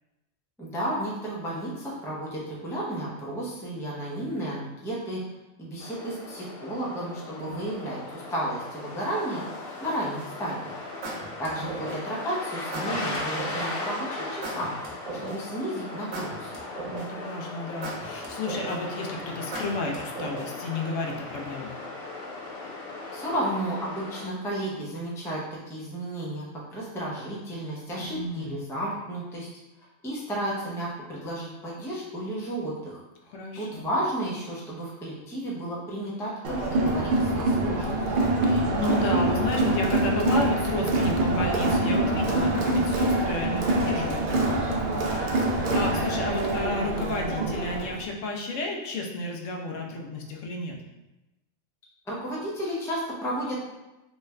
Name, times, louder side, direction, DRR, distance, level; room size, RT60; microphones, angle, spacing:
voice 1, 0.6-5.2 5.6-9.4 9.8-10.8 11.4-14.8 15.2-16.5 23.1-26.5 26.7-29.5 30.0-33.0 33.6-38.0 52.1-53.6, right 1 dB, 5° left, -5 dB, 0.4 m, -32 dB
sound 1, 5.8-24.2, left 2 dB, 55° left, 0.9 m, -37 dB
sound 2, 10.2-10.5 11.0-12.2 12.7-13.7 14.4-15.6 16.1-17.3 17.8-19.0 19.5-20.7, right 2 dB, 75° right, 1.1 m, -36 dB
voice 2, 16.9-21.8 28.0-28.6 33.3-33.8 38.4-50.8, left 2 dB, 80° left, 1 dB, 0.9 m, -32 dB
Crowd, 36.4-48.0, right 2 dB, 60° right, 0.6 m, -25 dB
3.2 x 2.3 x 3.1 m, 1.0 s
omnidirectional pair, 1.3 m